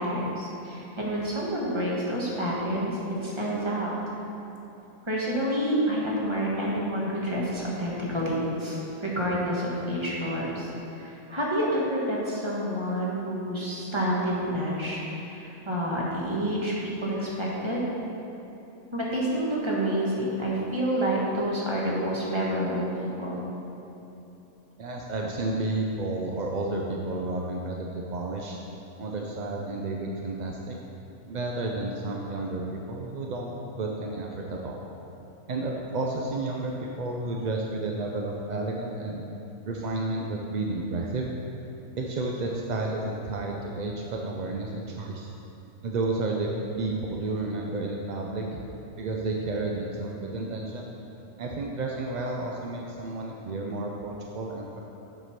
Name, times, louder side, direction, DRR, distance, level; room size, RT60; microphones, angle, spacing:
voice 1, 0.0-4.1 5.0-17.8 18.9-23.4, equal, 20° right, -5 dB, 1.4 m, -28 dB
voice 2, 24.8-28.6 29.0-30.8 31.3-34.8 35.5-39.2 39.6-41.3 42.0-45.3 45.8-46.5 46.8-48.6 49.0-50.9 51.4-54.8, right 2 dB, 55° right, -1 dB, 0.5 m, -31 dB
7.9 x 4.8 x 5.8 m, 3.0 s
omnidirectional pair, 1.4 m